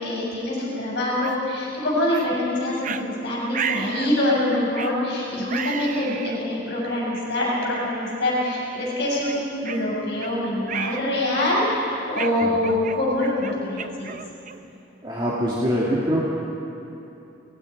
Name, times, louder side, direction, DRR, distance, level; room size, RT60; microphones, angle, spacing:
voice 1, 0.0-14.1, left 1 dB, 60° left, -5 dB, 5.8 m, -25 dB
sound 1, 1.2-1.4 2.1-2.3 2.8-3.0 3.5-4.2 4.8-5.0 5.5-6.4 7.1-7.2 7.9-8.2 8.6-8.7 9.3-10.3 10.7-11.1 11.4-11.7 12.2-14.7, right 7 dB, 40° right, 0.6 m, -32 dB
voice 2, 15.0-16.3, equal, 25° right, -6 dB, 2.1 m, -24 dB
28.0 x 19.5 x 4.8 m, 2.9 s
head